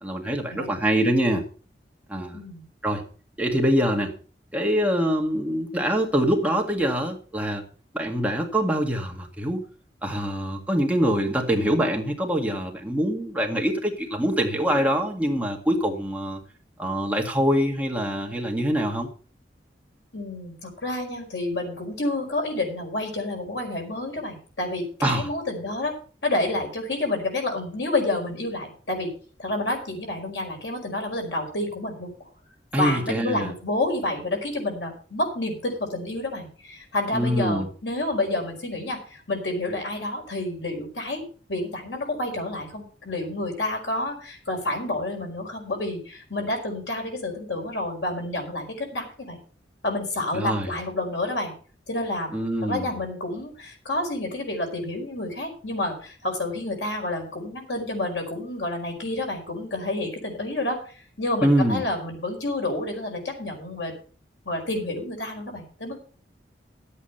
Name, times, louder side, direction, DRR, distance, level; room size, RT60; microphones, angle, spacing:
voice 1, 0.0-1.4 2.1-2.4 2.8-3.0 3.4-4.1 4.5-7.6 7.9-9.6 10.0-16.4 16.8-19.1 25.0-25.3 32.7-33.5 37.1-37.7 50.3-50.7 52.3-52.9 61.4-61.8, equal, 10° right, 1 dB, 2.0 m, -24 dB
voice 2, 2.3-2.6 20.1-26.0 26.2-29.1 29.4-32.1 32.8-41.2 41.5-49.4 49.8-51.5 51.9-52.3 52.6-63.9 64.4-66.0, left 2 dB, 80° left, 2 dB, 4.9 m, -29 dB
12.5 x 8.5 x 5.6 m, 0.39 s
head